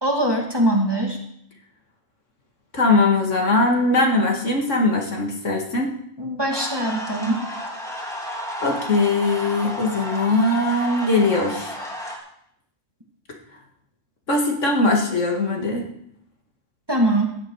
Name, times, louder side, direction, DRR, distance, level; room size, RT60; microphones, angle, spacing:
voice 1, 0.0-1.2 6.2-7.4 16.9-17.3, right 1 dB, 20° right, 0 dB, 2.3 m, -22 dB
voice 2, 2.7-5.9 8.6-11.8 14.3-15.9, left 2 dB, 65° left, 2 dB, 2.3 m, -20 dB
sound 1, 6.5-12.2, equal, ahead, 2.7 m, -32 dB
16.0 x 11.0 x 4.8 m, 0.71 s
omnidirectional pair, 1.4 m